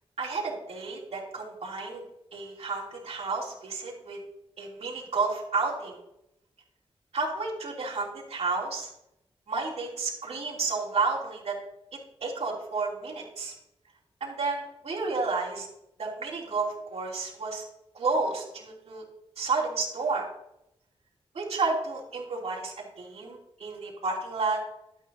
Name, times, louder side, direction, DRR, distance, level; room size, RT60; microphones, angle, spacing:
voice 1, 0.2-2.0 2.3-4.2 4.6-6.0 7.1-8.9 9.5-11.5 12.2-13.5 14.2-15.7 16.0-17.6 17.9-19.0 19.4-20.2 21.3-24.6, right 4 dB, 80° right, -4 dB, 3.1 m, -31 dB
12.0 x 9.4 x 2.8 m, 0.83 s
wide cardioid pair, 145°, 11 cm